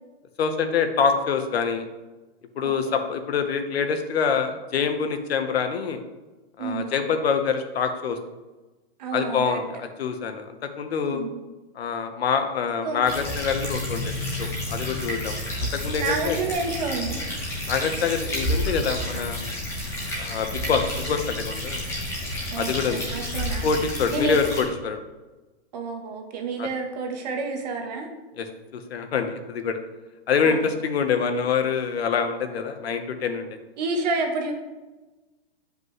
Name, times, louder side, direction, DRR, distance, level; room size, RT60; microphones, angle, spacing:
voice 1, 0.4-1.8 2.6-6.0 6.6-8.2 9.1-11.2 11.7-14.1 14.4-15.4 15.7-16.4 17.7-19.5 20.2-21.8 22.6-23.1 23.6-25.0 26.6-26.7 28.4-28.5 28.7-29.8 30.3-33.5, left 6 dB, 70° left, 7 dB, 1.0 m, -25 dB
voice 2, 2.6-3.0 6.6-6.9 9.0-9.6 11.1-11.4 12.8-13.1 16.0-17.3 22.5-23.7 24.1-24.4 25.7-28.1 30.4-30.6 33.8-34.5, right 3 dB, 40° right, 3 dB, 1.1 m, -29 dB
sound 1, 13.0-24.6, left 1 dB, 10° left, 1.0 m, -30 dB
9.5 x 5.2 x 3.1 m, 1.2 s
hypercardioid pair, 170°, 32 cm